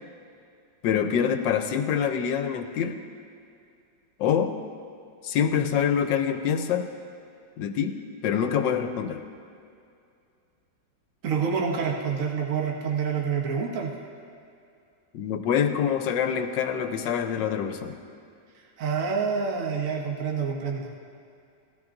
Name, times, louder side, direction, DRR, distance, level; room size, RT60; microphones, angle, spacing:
voice 1, 0.8-3.0 4.2-4.5 5.2-6.9 7.6-8.0 8.2-9.2 15.1-17.9, left 8 dB, 80° left, 7 dB, 1.3 m, -25 dB
voice 2, 11.2-13.9 18.8-20.9, right 6 dB, 55° right, -1 dB, 1.2 m, -27 dB
17.0 x 12.5 x 2.6 m, 2.5 s
omnidirectional pair, 2.0 m